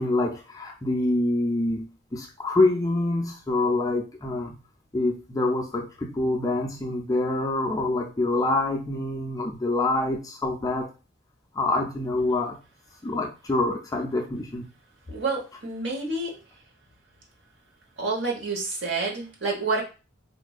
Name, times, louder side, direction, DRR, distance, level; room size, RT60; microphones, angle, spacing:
voice 1, 0.0-4.6 4.9-10.9 11.5-12.6 13.0-14.7, left 2 dB, 15° left, 0 dB, 0.4 m, -26 dB
voice 2, 15.1-16.4 18.0-19.8, right 3 dB, 65° right, -1 dB, 1.0 m, -28 dB
4.1 x 2.5 x 2.3 m, 0.32 s
head